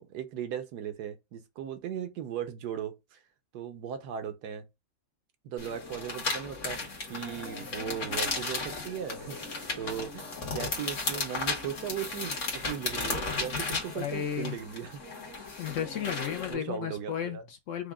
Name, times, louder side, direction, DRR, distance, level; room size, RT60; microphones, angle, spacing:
voice 1, 0.0-3.2 3.5-4.6 5.4-15.3 16.5-17.4, right 9 dB, 90° right, 1.3 m, -38 dB
sound 1, 5.6-16.5, left 3 dB, 50° left, 1.4 m, -35 dB
voice 2, 13.9-14.6 15.6-17.9, left 9 dB, 70° left, 0.8 m, -34 dB
4.9 x 2.1 x 3.5 m
omnidirectional pair, 1.7 m